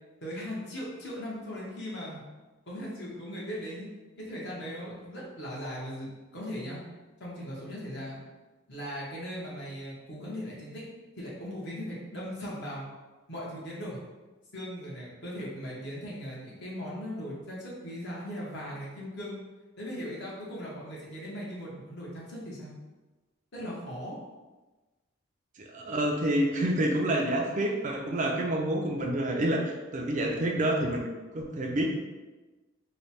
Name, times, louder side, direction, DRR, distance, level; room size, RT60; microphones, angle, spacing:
voice 1, 0.2-2.2 2.7-3.9 4.2-6.8 7.2-8.2 8.7-10.9 11.2-12.8 13.3-14.0 14.5-19.4 19.8-22.7 23.5-24.1, equal, 55° left, -5 dB, 1.1 m, -38 dB
voice 2, 25.6-31.1 31.3-32.0, right 1 dB, 35° right, 1 dB, 0.4 m, -28 dB
3.1 x 2.1 x 4.2 m, 1.2 s
head